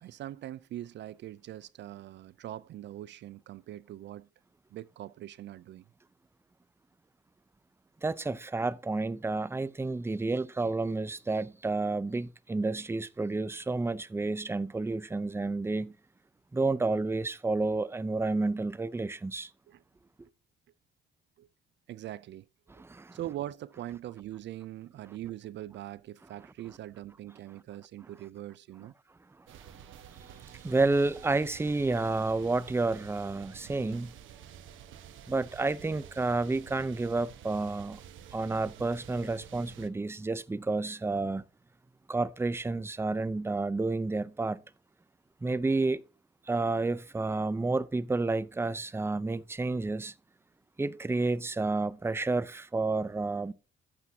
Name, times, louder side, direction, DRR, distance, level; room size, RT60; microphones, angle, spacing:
voice 1, 0.0-4.3 4.7-5.8 19.7-19.8 21.4-21.5 21.9-22.5 22.7-22.8 23.1-28.9, right 13 dB, 65° right, 0.4 m, -42 dB
voice 2, 8.0-15.9 16.5-19.5 22.7-23.2 30.6-34.1 35.3-38.0 38.3-41.4 42.1-44.6 45.4-46.0 46.5-50.1 50.8-53.5, right 3 dB, 10° right, 0.6 m, -30 dB
sound 1, 29.5-39.9, right 9 dB, 80° right, 1.2 m, -50 dB
13.5 x 8.4 x 2.8 m
cardioid pair, 90°, 20 cm